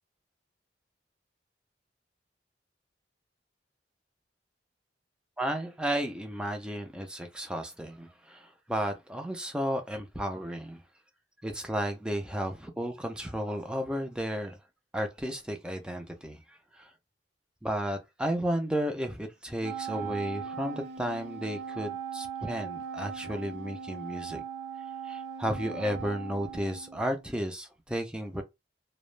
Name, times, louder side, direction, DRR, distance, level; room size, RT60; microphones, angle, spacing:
voice 1, 5.4-10.8 11.4-14.6 14.9-16.9 17.6-24.4 25.0-28.4, equal, 5° right, 0.4 m, -33 dB
Wind instrument woodwind instrument, 19.6-27.3, right 7 dB, 70° right, 0.5 m, -39 dB
2.3 x 2.0 x 3.1 m
head